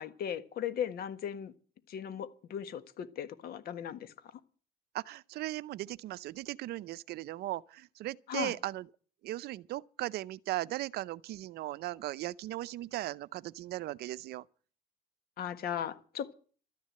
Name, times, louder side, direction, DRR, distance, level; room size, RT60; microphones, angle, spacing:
voice 1, 0.0-1.5 1.9-4.1 8.3-8.5 15.4-16.3, left 9 dB, 65° left, 1.6 m, -37 dB
voice 2, 4.9-8.8 9.2-14.4, right 16 dB, 70° right, 0.6 m, -38 dB
13.0 x 10.5 x 7.6 m
cardioid pair, 110°, 17 cm